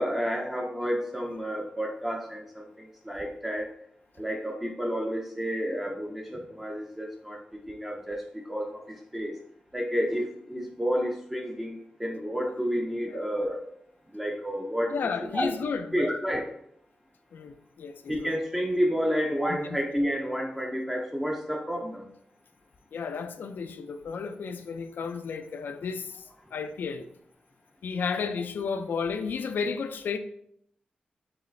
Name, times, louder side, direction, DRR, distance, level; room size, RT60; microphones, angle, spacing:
voice 1, 0.0-3.7 4.2-9.3 9.7-13.6 14.1-15.0 15.3-15.5 15.9-16.5 18.1-22.1, equal, 10° right, 0 dB, 0.5 m, -30 dB
voice 2, 14.9-16.2 17.3-18.3 19.5-19.6 22.9-26.2 26.5-27.1 27.8-30.2, left 5 dB, 85° left, 9 dB, 0.3 m, -33 dB
4.8 x 3.1 x 3.2 m, 0.70 s
wide cardioid pair, 140°, 3 cm